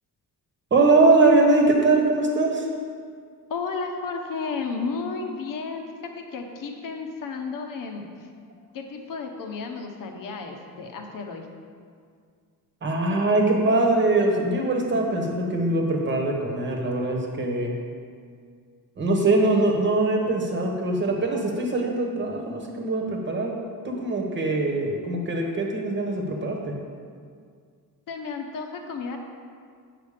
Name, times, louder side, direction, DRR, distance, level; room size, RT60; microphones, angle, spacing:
voice 1, 0.7-2.7 12.8-17.7 19.0-23.5 23.8-26.7, right 2 dB, 30° right, 1 dB, 1.2 m, -22 dB
voice 2, 3.5-5.9 6.1-8.3 8.7-11.5 28.1-29.2, left 4 dB, 60° left, 3 dB, 1.0 m, -33 dB
8.5 x 5.9 x 5.0 m, 2.1 s
cardioid pair, 165°, 37 cm